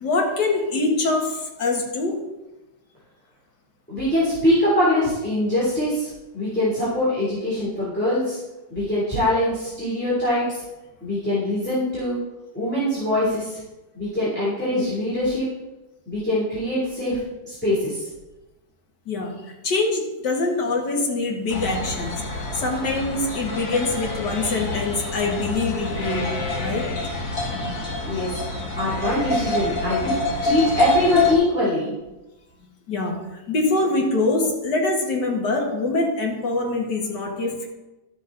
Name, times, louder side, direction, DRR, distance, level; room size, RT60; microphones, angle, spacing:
voice 1, 0.0-2.2 19.1-19.4 19.6-22.1 22.5-26.9 32.9-37.7, left 3 dB, 65° left, 0 dB, 2.2 m, -24 dB
voice 2, 3.9-8.4 8.7-10.6 11.0-12.2 12.5-13.6 13.9-15.4 16.1-17.2 17.4-18.0 28.1-28.3 28.8-30.1 30.4-31.9, left 1 dB, 5° left, -10 dB, 3.1 m, -23 dB
sound 1, 21.5-31.3, left 2 dB, 50° left, 2.0 m, -26 dB
12.5 x 7.1 x 3.9 m, 1.0 s
omnidirectional pair, 2.0 m